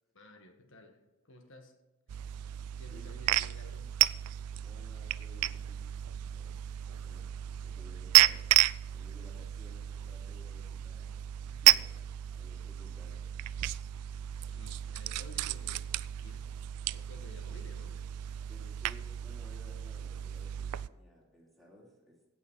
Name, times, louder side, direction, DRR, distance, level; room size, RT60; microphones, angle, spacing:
voice 1, 0.1-1.0 1.2-1.8 2.8-3.9 14.4-15.9 16.2-16.6 16.8-18.0, left 1 dB, 55° left, 4 dB, 1.7 m, -54 dB
sound 1, 2.1-20.9, right 14 dB, 90° right, 0.4 m, -32 dB
voice 2, 4.6-8.5 8.9-13.3 18.5-22.3, left 1 dB, ahead, -4 dB, 3.1 m, -58 dB
16.5 x 6.1 x 4.7 m, 1.0 s
head